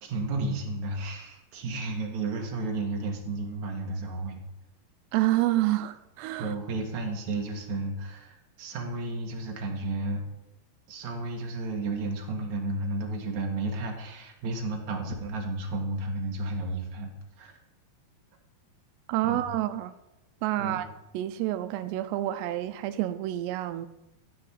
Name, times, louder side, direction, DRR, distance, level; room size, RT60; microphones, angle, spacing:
voice 1, 0.0-4.4 6.4-10.2 10.9-17.1 17.4-17.6 19.2-19.4 20.6-20.8, right 2 dB, 50° right, 2.9 m, -32 dB
voice 2, 5.1-6.5 19.1-19.9 20.4-20.9 21.1-23.9, right 14 dB, 85° right, 2.7 m, -28 dB
15.0 x 5.4 x 8.8 m
omnidirectional pair, 4.8 m